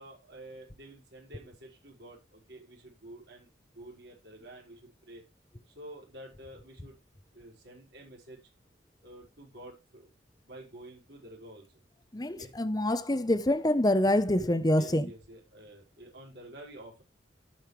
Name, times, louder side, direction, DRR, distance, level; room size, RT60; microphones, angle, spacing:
voice 1, 0.0-3.5 3.7-5.2 5.7-7.0 7.3-8.4 9.0-10.1 10.4-11.7 12.4-12.5 14.7-17.0, right 1 dB, 65° right, 5.1 m, -49 dB
voice 2, 12.1-15.1, left 1 dB, 20° left, 0.9 m, -26 dB
17.0 x 5.7 x 3.3 m
head